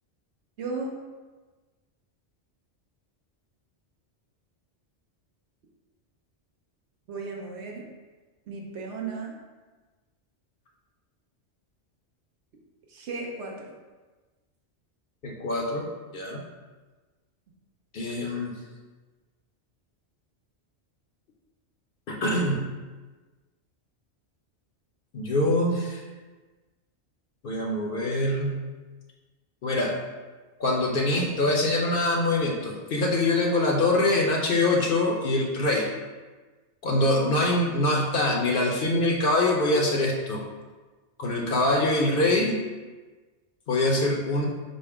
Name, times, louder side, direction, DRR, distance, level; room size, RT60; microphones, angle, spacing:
voice 1, 0.6-0.9 7.1-7.8 8.5-9.3 12.9-13.7, right 4 dB, 75° right, 0 dB, 1.0 m, -35 dB
voice 2, 15.2-15.9 16.1-16.4 17.9-18.5 22.1-22.7 25.1-26.0 27.4-28.6 29.6-29.9 30.6-35.9 36.8-40.4 41.2-42.6 43.7-44.5, left 2 dB, 55° left, 0 dB, 0.7 m, -24 dB
5.2 x 2.1 x 4.7 m, 1.3 s
omnidirectional pair, 1.2 m